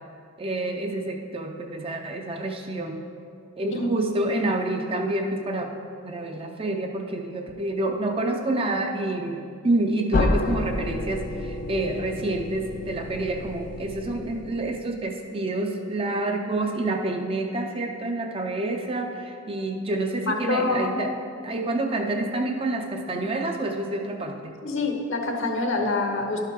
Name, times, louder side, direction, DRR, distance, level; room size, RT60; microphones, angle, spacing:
voice 1, 0.4-3.0 3.6-5.7 6.0-21.1 21.4-24.5, right 2 dB, 25° right, 3 dB, 0.5 m, -28 dB
voice 2, 3.7-4.1 20.3-21.0 24.6-26.4, left 2 dB, 60° left, 3 dB, 0.9 m, -26 dB
sound 1, 10.1-14.9, left 2 dB, 40° left, 0.4 m, -29 dB
11.0 x 5.7 x 4.7 m, 2.5 s
head